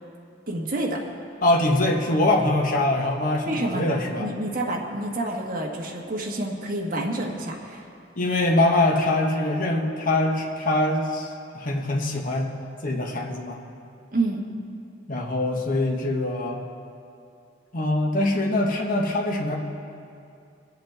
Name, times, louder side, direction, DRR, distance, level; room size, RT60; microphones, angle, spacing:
voice 1, 0.5-1.0 3.4-7.8 14.1-14.4, right 2 dB, 50° right, -2 dB, 1.6 m, -28 dB
voice 2, 1.4-4.3 8.2-12.5 12.8-13.6 15.1-16.6 17.7-19.6, left 2 dB, 50° left, 0 dB, 1.1 m, -23 dB
24.0 x 8.0 x 3.5 m, 2.5 s
head